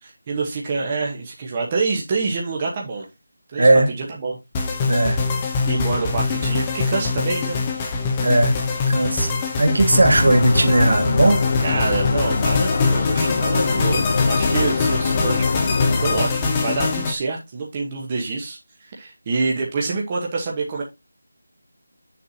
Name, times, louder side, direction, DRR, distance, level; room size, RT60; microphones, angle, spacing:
voice 1, 0.0-3.1 3.5-3.7 4.2-4.4 5.6-7.6 7.9-8.0 11.6-20.8, right 4 dB, 15° right, 1.0 m, -26 dB
voice 2, 3.6-3.9 4.9-5.2 8.2-8.5 8.9-11.4, right 2 dB, 60° right, 1.8 m, -17 dB
sound 1, 4.5-17.1, left 4 dB, 10° left, 0.7 m, -23 dB
sound 2, 9.9-16.2, left 4 dB, 30° left, 0.3 m, -23 dB
9.3 x 6.8 x 2.7 m
figure-of-eight pair, 175°, 0 cm